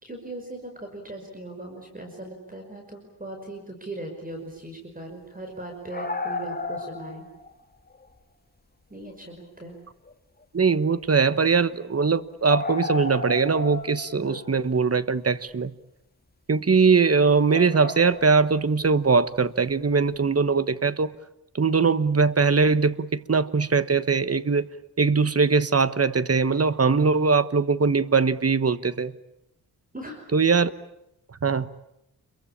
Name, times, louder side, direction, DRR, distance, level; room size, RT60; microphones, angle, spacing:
voice 1, 0.0-7.3 8.9-9.8 29.9-30.3, right 2 dB, 20° right, 5.6 m, -39 dB
sound 1, 5.7-7.5 7.9-8.0 9.1-9.2 9.7-9.8 10.1-10.2 12.4-14.7 17.5-18.5 19.9-20.0, left 3 dB, 25° left, 2.5 m, -33 dB
voice 2, 10.5-15.7 16.5-21.1 21.6-24.7 25.0-29.1 30.3-30.7 31.4-31.7, right 4 dB, 35° right, 1.2 m, -21 dB
29.5 x 23.0 x 8.7 m
wide cardioid pair, 80°, 40 cm